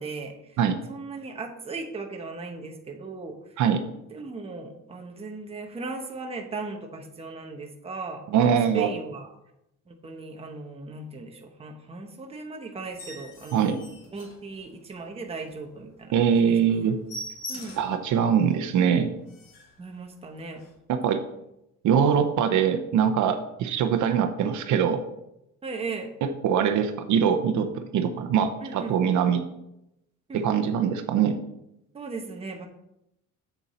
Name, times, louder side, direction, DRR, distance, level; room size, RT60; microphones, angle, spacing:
voice 1, 0.0-0.6 0.9-3.4 4.1-9.3 9.9-13.7 14.1-16.8 17.5-17.8 19.8-20.6 25.6-26.1 28.6-29.0 30.3-30.5 31.9-32.7, right 3 dB, 20° right, 3 dB, 0.9 m, -37 dB
voice 2, 8.3-8.9 13.5-13.8 16.1-17.0 17.8-19.1 20.9-21.2 21.8-25.0 26.2-29.4 30.3-31.4, right 7 dB, 65° right, 8 dB, 0.8 m, -23 dB
sound 1, 12.8-15.0 15.4-15.5 15.9-16.0 16.3-16.4 16.7-18.0 18.5-18.6 19.0-19.1 19.3-19.8 20.5-20.7, left 1 dB, 90° left, 2.6 m, -42 dB
7.3 x 6.9 x 4.2 m, 0.84 s
cardioid pair, 165°, 31 cm